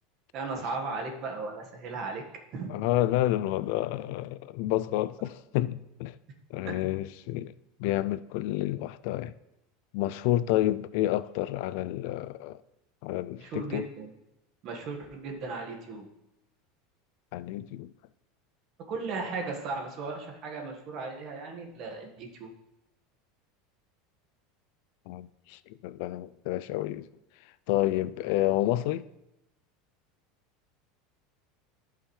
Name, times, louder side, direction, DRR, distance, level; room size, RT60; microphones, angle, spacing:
voice 1, 0.3-2.2 2.5-2.7 6.6-6.8 13.4-14.1 14.6-16.1 18.9-22.5, right 4 dB, 40° right, 1.6 m, -36 dB
voice 2, 2.7-6.2 6.5-7.5 7.8-9.3 9.9-12.6 13.0-13.9 17.3-17.9 25.1-27.1 27.7-29.1, left 14 dB, 60° left, 0.3 m, -29 dB
14.0 x 5.6 x 3.3 m
supercardioid pair, 150°, 0 cm